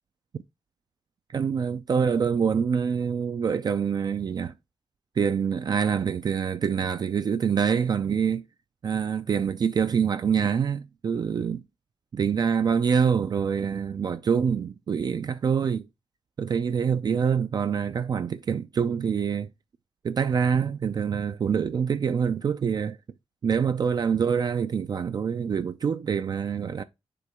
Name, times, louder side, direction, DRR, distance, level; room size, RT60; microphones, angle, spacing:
voice 1, 1.3-4.5 5.2-8.4 8.8-11.6 12.1-15.9 16.4-19.5 20.0-23.0 23.4-26.8, right 7 dB, 40° right, 0.3 m, -25 dB
6.8 x 4.1 x 3.5 m
wide cardioid pair, 155°, 10 cm